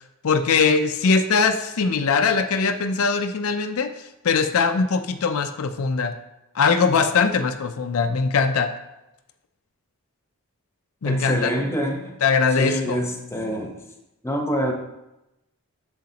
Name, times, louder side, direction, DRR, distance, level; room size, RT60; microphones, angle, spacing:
voice 1, 0.2-6.1 6.5-8.7 11.0-11.5 12.2-13.0, left 5 dB, 70° left, 8 dB, 0.5 m, -21 dB
voice 2, 11.0-12.2 12.6-13.7 14.2-14.7, equal, 10° left, 2 dB, 0.9 m, -26 dB
7.9 x 7.3 x 2.9 m, 0.92 s
head